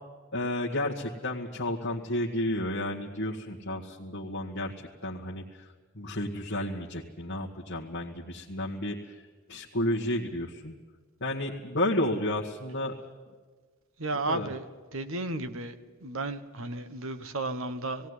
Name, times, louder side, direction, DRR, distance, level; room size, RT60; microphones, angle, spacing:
voice 1, 0.3-10.7 11.2-12.9 14.3-14.5, left 1 dB, 50° left, -3 dB, 1.6 m, -32 dB
voice 2, 14.0-14.7 14.9-18.1, right 2 dB, 65° right, 11 dB, 1.2 m, -33 dB
18.5 x 17.5 x 9.7 m, 1.4 s
head